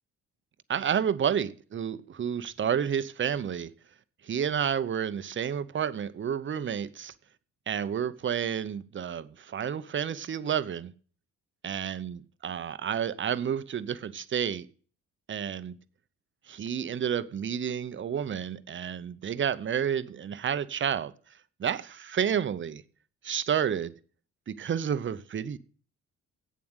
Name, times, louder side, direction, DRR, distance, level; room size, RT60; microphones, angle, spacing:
voice 1, 0.7-3.7 4.2-7.1 7.7-10.9 11.6-14.7 15.3-15.8 16.5-21.1 21.6-22.8 23.2-23.9 24.5-25.6, right 8 dB, 40° right, 0.8 m, -30 dB
8.5 x 7.3 x 8.0 m
cardioid pair, 90°, 30 cm